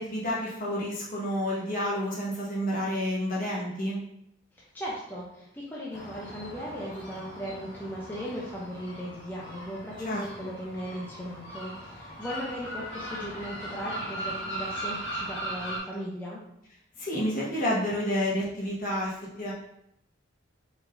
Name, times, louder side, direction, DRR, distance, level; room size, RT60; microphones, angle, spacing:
voice 1, 0.0-4.0 10.0-10.5 17.0-19.5, equal, 45° left, -6 dB, 1.4 m, -30 dB
voice 2, 4.7-16.4, equal, 10° left, -6 dB, 0.6 m, -37 dB
sound 1, 5.9-15.8, right 1 dB, 75° left, 1.6 m, -39 dB
4.7 x 3.8 x 2.6 m, 0.79 s
head